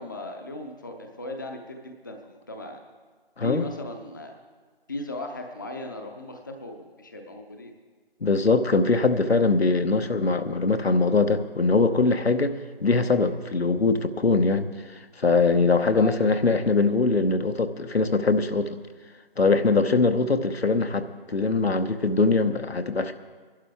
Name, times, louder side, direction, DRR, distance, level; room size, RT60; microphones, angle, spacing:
voice 1, 0.0-2.8 3.4-4.4 4.9-7.7 15.9-16.3, left 1 dB, 20° left, 3 dB, 0.6 m, -37 dB
voice 2, 8.2-12.5 12.8-14.7 15.2-18.8 19.4-23.1, left 3 dB, 85° left, 8 dB, 1.0 m, -22 dB
22.0 x 12.0 x 3.5 m, 1.4 s
figure-of-eight pair, 160°, 30 cm